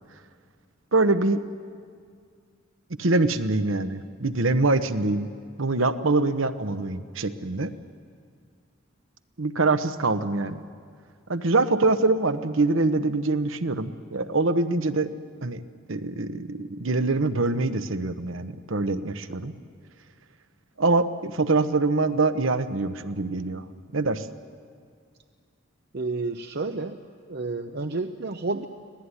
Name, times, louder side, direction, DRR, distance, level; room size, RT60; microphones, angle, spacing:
voice 1, 0.9-1.4 3.0-5.3 5.6-7.7 9.4-10.6 11.3-15.1 15.4-15.6 15.9-19.5 20.8-23.6 23.9-24.3, right 3 dB, 70° right, 10 dB, 1.1 m, -24 dB
voice 2, 25.9-28.7, right 3 dB, 50° right, 6 dB, 0.7 m, -31 dB
25.0 x 18.0 x 9.9 m, 2.1 s
head